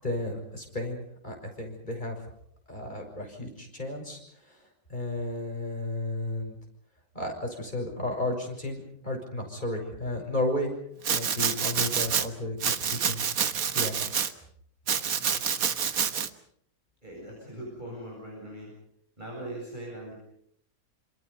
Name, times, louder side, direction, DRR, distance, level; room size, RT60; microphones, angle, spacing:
voice 1, 0.0-2.1 2.7-4.2 4.5-4.6 4.9-6.6 7.1-10.7 11.1-13.2 13.7-13.9, left 1 dB, 25° left, 2 dB, 6.4 m, -33 dB
Domestic sounds home sounds, 11.0-12.3 12.6-14.3 14.9-16.3, right 7 dB, 60° right, 1.6 m, -27 dB
voice 2, 17.0-18.7 19.2-20.1, right 1 dB, 25° right, -3 dB, 8.0 m, -40 dB
27.5 x 27.0 x 5.5 m, 0.69 s
omnidirectional pair, 1.7 m